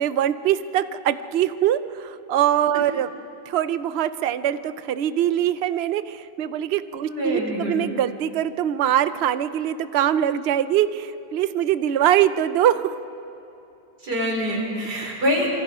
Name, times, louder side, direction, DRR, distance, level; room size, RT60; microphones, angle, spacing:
voice 1, 0.0-3.1 3.5-13.0, right 11 dB, 60° right, 13 dB, 0.6 m, -23 dB
voice 2, 7.0-7.8 14.0-15.5, equal, 75° right, -1 dB, 4.6 m, -25 dB
25.5 x 24.0 x 5.0 m, 2.9 s
omnidirectional pair, 1.7 m